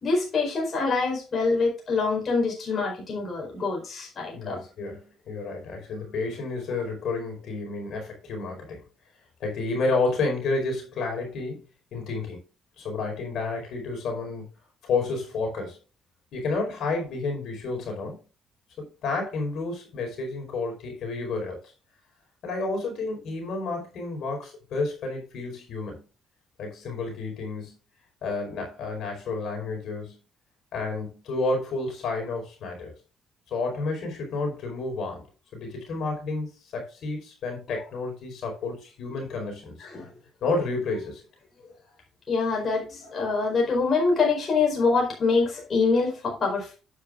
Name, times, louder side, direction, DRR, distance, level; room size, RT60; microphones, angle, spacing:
voice 1, 0.0-4.6 39.8-40.1 42.3-46.8, left 4 dB, 40° left, 0 dB, 4.5 m, -25 dB
voice 2, 4.3-8.8 9.4-11.6 11.9-12.4 12.8-14.4 14.8-15.8 16.3-18.2 18.8-21.7 22.4-26.0 26.6-27.7 28.2-30.1 30.7-32.9 33.5-35.2 35.5-39.9 40.4-41.2, left 3 dB, 70° left, 2 dB, 4.8 m, -30 dB
11.5 x 8.6 x 2.5 m, 0.34 s
cardioid pair, 100°, 0 cm